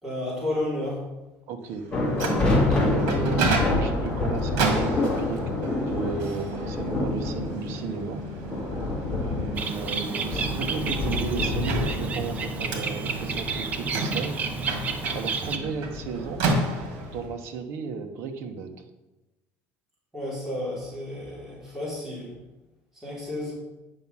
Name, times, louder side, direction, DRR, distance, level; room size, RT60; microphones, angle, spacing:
voice 1, 0.0-1.1 20.1-22.3 23.0-23.5, left 1 dB, 5° right, -9 dB, 3.9 m, -31 dB
voice 2, 1.5-1.9 2.4-8.2 9.2-14.4 15.1-16.5 17.1-18.8, right 5 dB, 55° right, 6 dB, 1.1 m, -34 dB
Microwave oven, 1.8-17.3, right 3 dB, 75° right, 2.0 m, -32 dB
sound 1, 1.9-17.3, left 2 dB, 15° left, 2.4 m, -29 dB
Bird, 9.6-15.6, right 4 dB, 30° right, 0.8 m, -31 dB
9.3 x 6.0 x 5.5 m, 1.0 s
cardioid pair, 160°, 5 cm